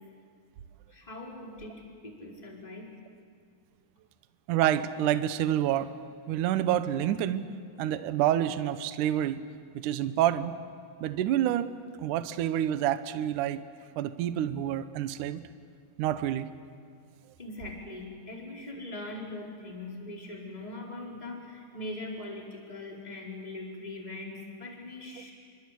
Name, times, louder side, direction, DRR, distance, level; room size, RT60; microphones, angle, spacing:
voice 1, 0.9-2.9 17.4-25.3, left 2 dB, 10° left, -2 dB, 4.4 m, -41 dB
voice 2, 4.5-6.0 6.3-7.4 7.8-9.4 9.7-10.5 11.0-11.7 12.0-13.6 14.0-15.4 16.0-16.5, right 11 dB, 80° right, 11 dB, 1.8 m, -28 dB
28.0 x 25.0 x 8.4 m, 2.4 s
omnidirectional pair, 5.0 m